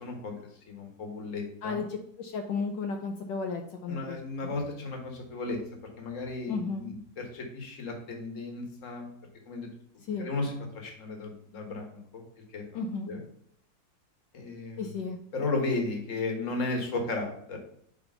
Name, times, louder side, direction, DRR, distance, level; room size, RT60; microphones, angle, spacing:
voice 1, 0.0-1.8 3.9-5.6 6.0-9.1 9.5-9.7 10.2-12.2 12.5-12.6 13.1-13.2 14.3-15.0 15.3-17.6, left 3 dB, 45° left, 2 dB, 1.7 m, -34 dB
voice 2, 1.6-4.5 6.5-6.9 10.0-10.3 12.7-13.1 14.8-15.2, left 4 dB, 80° left, 3 dB, 1.4 m, -34 dB
5.0 x 4.9 x 5.5 m, 0.69 s
omnidirectional pair, 2.0 m